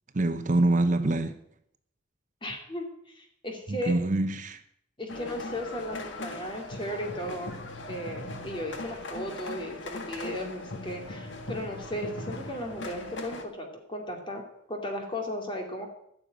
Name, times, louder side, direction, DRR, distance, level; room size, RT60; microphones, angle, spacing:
voice 1, 0.1-1.4 3.7-4.6, right 2 dB, 40° right, 0.7 m, -25 dB
voice 2, 2.4-3.9 5.0-7.5 7.9-14.4 14.7-15.9, left 1 dB, 25° left, 2.7 m, -36 dB
sound 1, 5.1-13.4, left 2 dB, 65° left, 1.7 m, -39 dB
14.5 x 6.9 x 9.2 m
head